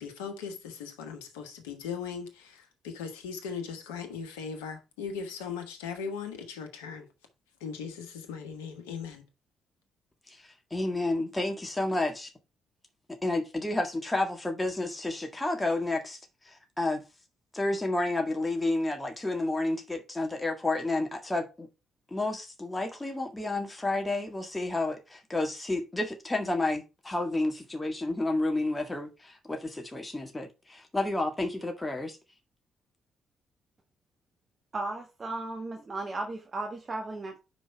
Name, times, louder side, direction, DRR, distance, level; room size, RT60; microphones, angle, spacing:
voice 1, 0.0-7.1 7.6-9.2, left 6 dB, 75° left, 1.2 m, -38 dB
voice 2, 10.3-12.3 13.2-17.0 17.5-21.7 22.1-32.2, left 2 dB, 15° left, 1.7 m, -31 dB
voice 3, 34.7-37.4, right 2 dB, 35° right, 1.3 m, -35 dB
5.2 x 5.1 x 5.7 m
figure-of-eight pair, 45°, 0 cm